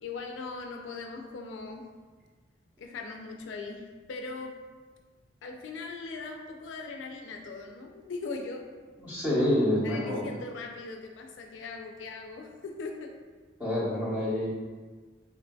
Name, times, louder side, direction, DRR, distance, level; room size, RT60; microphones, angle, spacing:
voice 1, 0.0-1.9 2.8-4.6 5.4-8.7 9.8-13.1, left 3 dB, 85° left, 2 dB, 0.4 m, -40 dB
voice 2, 9.0-10.3 13.6-14.5, left 1 dB, 10° right, -10 dB, 0.9 m, -27 dB
3.6 x 2.5 x 2.3 m, 1.4 s
head